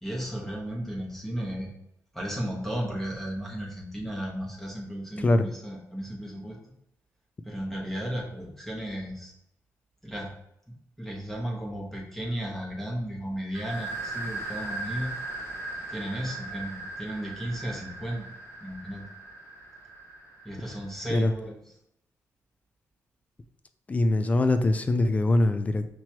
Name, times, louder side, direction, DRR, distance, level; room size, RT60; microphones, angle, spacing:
voice 1, 0.0-1.7 2.1-6.6 7.4-9.3 10.0-10.3 10.7-15.1 15.9-18.3 18.6-19.1 20.4-21.5, equal, 5° left, -2 dB, 1.1 m, -34 dB
sound 1, 13.5-21.0, right 2 dB, 45° left, 1.7 m, -38 dB
voice 2, 23.9-25.9, left 2 dB, 20° left, 9 dB, 0.3 m, -23 dB
6.0 x 3.0 x 2.8 m, 0.78 s
wide cardioid pair, 145°, 7 cm